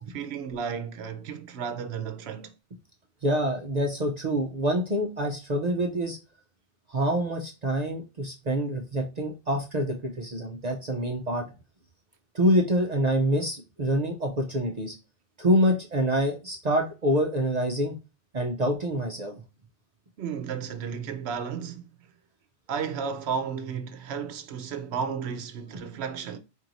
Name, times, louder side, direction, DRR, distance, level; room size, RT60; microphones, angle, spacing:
voice 1, 0.1-2.5 20.2-22.1 22.7-26.4, right 6 dB, 70° right, 0.9 m, -33 dB
voice 2, 3.2-6.2 6.9-11.5 12.3-15.0 15.4-17.9 18.3-19.3, equal, 45° right, 0.6 m, -26 dB
4.5 x 3.0 x 2.5 m
omnidirectional pair, 1.2 m